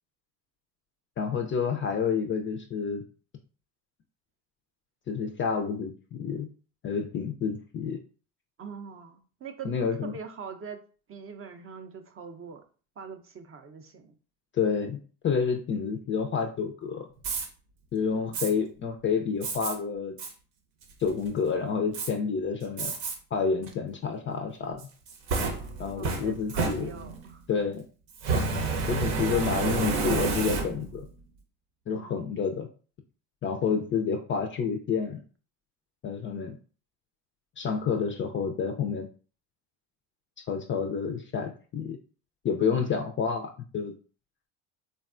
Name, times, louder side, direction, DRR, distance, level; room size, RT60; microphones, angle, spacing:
voice 1, 1.2-3.0 5.1-6.5 6.8-8.0 9.6-10.1 14.5-15.0 15.2-17.1 17.9-20.1 21.0-22.9 23.3-24.8 25.8-26.9 27.5-27.8 28.9-31.1 31.9-32.7 33.4-35.2 36.0-36.6 37.6-39.1 40.5-42.0 42.4-43.9, left 6 dB, 30° left, 5 dB, 0.4 m, -29 dB
voice 2, 8.6-9.7 10.0-10.8 11.1-12.6 13.0-14.2 18.1-18.4 24.7-24.8 25.3-27.4 31.9-32.2 33.6-33.9 36.4-36.5 42.6-42.9, right 6 dB, 30° right, 7 dB, 0.5 m, -43 dB
Fire, 17.2-17.5 18.3-18.5 19.4-19.7 20.2-20.3 20.8-21.3 21.9-22.1 22.8-23.2 23.6-23.7 24.8-27.3 28.2-31.0, right 3 dB, 75° right, 0.8 m, -29 dB
3.4 x 2.2 x 2.4 m, 0.38 s
hypercardioid pair, 70°, 44 cm